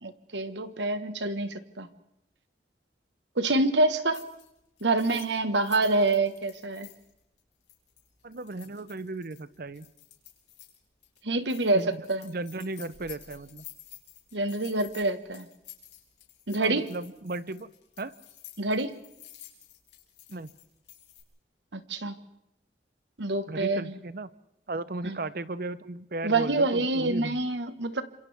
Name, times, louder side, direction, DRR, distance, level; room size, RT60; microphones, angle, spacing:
voice 1, 0.0-1.9 3.4-4.2 4.8-6.9 11.2-11.8 12.1-12.2 14.3-15.5 16.5-16.9 18.6-19.0 21.7-22.1 23.2-24.0 25.0-25.2 26.2-28.0, right 2 dB, 85° right, 10 dB, 1.5 m, -26 dB
sound 1, 4.1-4.5 4.8-10.8 11.0-11.2 11.5-21.2, left 12 dB, 85° left, 4.8 m, -51 dB
voice 2, 8.2-9.9 11.7-11.9 12.2-13.6 16.6-17.7 18.0-18.1 20.3-20.5 23.5-24.3 24.7-27.4, right 2 dB, 55° right, 15 dB, 0.7 m, -35 dB
29.5 x 27.0 x 3.5 m, 0.80 s
head